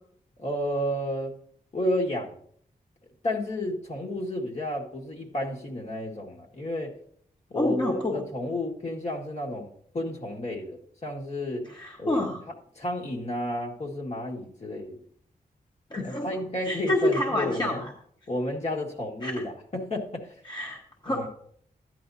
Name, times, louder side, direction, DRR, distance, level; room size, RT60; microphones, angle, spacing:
voice 1, 0.4-1.3 1.7-2.4 3.2-6.9 7.5-11.7 12.0-12.3 12.8-15.0 16.0-17.8 18.3-20.3 21.1-21.3, left 1 dB, 45° left, -1 dB, 1.9 m, -31 dB
voice 2, 7.5-8.2 11.7-12.4 15.9-16.3 16.6-17.9 19.2-19.3 20.5-21.3, left 1 dB, 30° left, -1 dB, 1.3 m, -28 dB
13.5 x 10.0 x 2.8 m, 0.62 s
wide cardioid pair, 165°, 15 cm